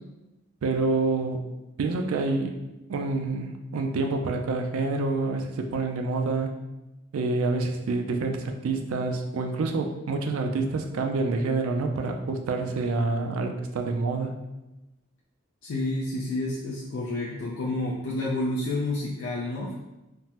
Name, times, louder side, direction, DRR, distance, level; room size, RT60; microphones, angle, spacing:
voice 1, 0.6-1.5 1.8-2.6 2.9-6.5 7.1-14.4, right 3 dB, 80° right, 4 dB, 0.4 m, -27 dB
voice 2, 15.6-19.7, left 2 dB, 65° left, -4 dB, 0.4 m, -29 dB
3.4 x 2.0 x 2.8 m, 1.0 s
head